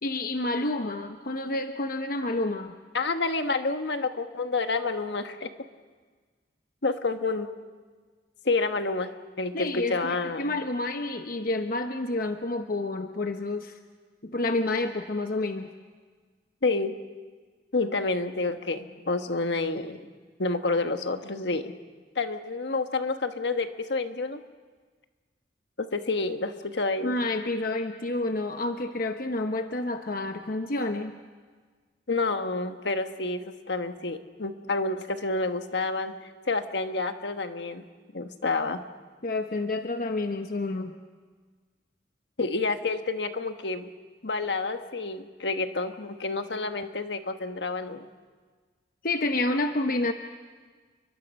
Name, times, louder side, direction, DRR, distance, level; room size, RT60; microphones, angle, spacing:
voice 1, 0.0-2.8 9.5-13.8 14.2-15.7 27.0-31.1 39.2-40.9 49.0-50.1, left 2 dB, 55° left, 6 dB, 1.0 m, -29 dB
voice 2, 2.9-5.5 6.8-7.5 8.4-9.1 9.4-10.5 16.6-16.9 17.7-20.0 20.4-21.7 22.1-24.4 25.8-27.1 32.1-36.2 36.5-37.8 38.1-38.8 42.4-43.9 44.2-48.1, left 3 dB, 75° left, 7 dB, 1.3 m, -29 dB
29.5 x 23.0 x 5.5 m, 1.5 s
head